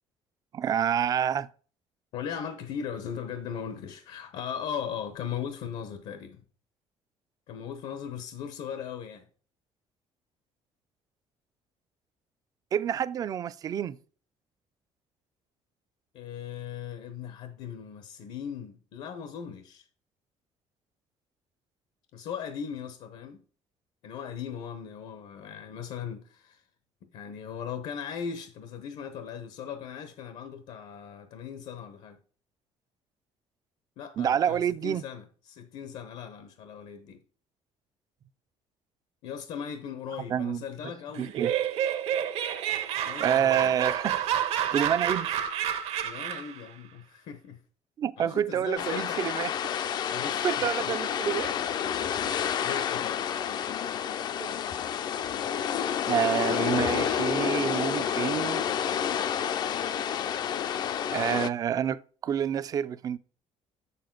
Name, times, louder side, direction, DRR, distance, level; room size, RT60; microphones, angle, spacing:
voice 1, 0.5-1.5 12.7-14.0 34.2-35.0 40.3-40.6 41.2-41.5 43.2-44.4 44.7-45.3 48.0-49.5 50.4-51.6 54.4-54.5 56.1-58.6 61.1-63.2, right 9 dB, 35° right, 0.4 m, -28 dB
voice 2, 2.1-6.4 7.5-9.3 16.1-19.9 22.1-23.4 24.0-26.6 27.1-32.2 34.0-37.2 39.2-41.3 43.0-43.7 46.0-47.6 48.2-49.2 50.1-50.7 52.1-53.2, left 7 dB, 75° left, 0.9 m, -38 dB
Laughter, 41.1-46.6, right 10 dB, 70° right, 1.1 m, -29 dB
sound 1, 48.8-61.5, left 8 dB, 40° left, 0.4 m, -29 dB
7.6 x 6.8 x 3.8 m
cardioid pair, 175°, 11 cm